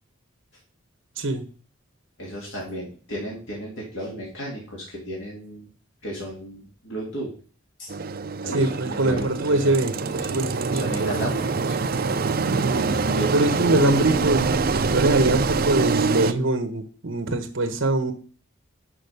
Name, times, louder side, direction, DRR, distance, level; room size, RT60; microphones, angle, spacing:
voice 1, 2.2-5.7 6.0-7.3 7.8-7.9 8.4-9.8 10.3-11.8 13.1-13.9, right 1 dB, 65° left, -3 dB, 2.4 m, -34 dB
Engine, 7.9-16.3, right 4 dB, 45° right, 0.5 m, -25 dB
voice 2, 8.5-11.2 12.5-13.0 13.3-14.5 14.9-18.1, right 2 dB, 70° right, 6 dB, 1.0 m, -23 dB
6.3 x 5.4 x 6.6 m, 0.41 s
head